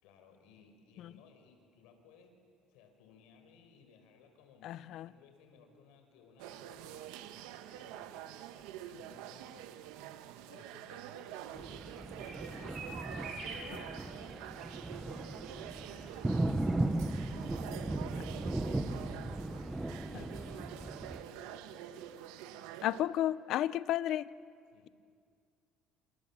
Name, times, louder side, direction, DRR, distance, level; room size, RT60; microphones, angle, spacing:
voice 1, 0.0-2.3 2.7-8.3 8.8-9.7 10.5-17.1 17.7-22.1 24.7-24.9, left 6 dB, 85° left, 5 dB, 5.1 m, -60 dB
voice 2, 4.6-5.1 20.1-20.2 22.8-24.3, left 12 dB, 60° left, 17 dB, 0.7 m, -33 dB
sound 1, 6.4-23.0, right 11 dB, 90° right, 1.3 m, -47 dB
Thunder, 11.6-21.2, right 2 dB, 10° right, 1.0 m, -37 dB
sound 2, 12.2-17.3 17.6-17.7 17.9-18.0, right 3 dB, 40° right, 7.7 m, -49 dB
28.0 x 28.0 x 7.5 m, 2.3 s
cardioid pair, 135°, 0 cm